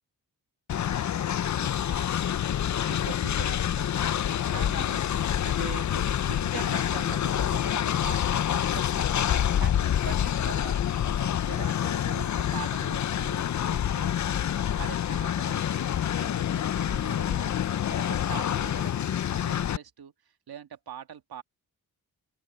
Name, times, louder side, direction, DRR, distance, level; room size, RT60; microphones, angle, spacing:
Train, 0.7-19.8, left 10 dB, 50° left, 0.5 m, -27 dB
voice 1, 1.6-2.2 2.8-5.1 5.4-21.4, right 8 dB, 85° right, 2.1 m, -43 dB
open air
wide cardioid pair, 120°, 37 cm